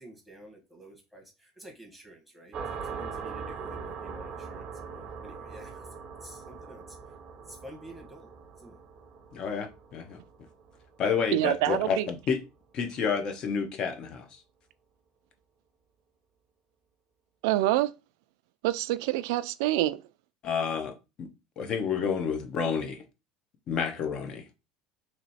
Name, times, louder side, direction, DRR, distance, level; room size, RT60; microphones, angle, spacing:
voice 1, 0.0-4.6 5.2-5.9 6.2-7.0 7.5-8.3 8.5-8.8 19.0-19.2, right 1 dB, 5° left, 1.2 m, -50 dB
sound 1, 2.5-11.8, right 5 dB, 35° right, 0.6 m, -41 dB
voice 2, 9.3-10.2 11.0-12.4 12.7-14.4 20.4-21.3 21.6-23.0 23.7-24.4, left 6 dB, 40° left, 0.8 m, -30 dB
voice 3, 11.3-12.1 17.4-17.9 18.6-20.0, right 15 dB, 85° right, 0.4 m, -26 dB
3.1 x 3.0 x 4.1 m
cardioid pair, 150°, 2 cm